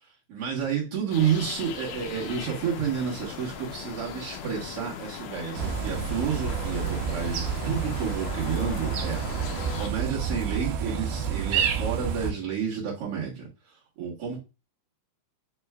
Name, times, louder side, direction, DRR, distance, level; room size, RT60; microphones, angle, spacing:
voice 1, 0.3-9.2 9.7-13.5 14.0-14.4, right 7 dB, 55° right, -5 dB, 2.0 m, -30 dB
sound 1, 1.1-9.9, left 7 dB, 80° left, 2.1 m, -39 dB
sound 2, 5.5-12.3, right 7 dB, 80° right, 2.2 m, -29 dB
5.5 x 3.0 x 2.3 m, 0.28 s
omnidirectional pair, 3.9 m